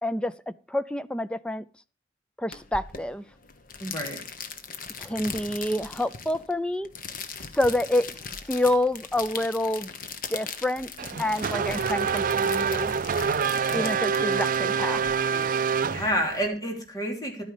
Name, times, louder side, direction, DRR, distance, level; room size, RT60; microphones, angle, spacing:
voice 1, 0.0-1.6 2.4-3.2 5.0-6.9 7.5-8.1 8.5-9.9 10.3-12.9 13.7-15.1, left 1 dB, 5° left, 0.5 m, -28 dB
sound 1, 2.5-15.1, left 5 dB, 50° left, 1.3 m, -39 dB
voice 2, 3.8-4.2 11.1-11.2 13.7-13.9 14.2-14.4 15.6-17.4, equal, 20° left, 3.4 m, -30 dB
Race car auto racing / Accelerating revving vroom, 11.0-16.5, right 6 dB, 50° right, 0.5 m, -26 dB
12.0 x 9.3 x 5.0 m
head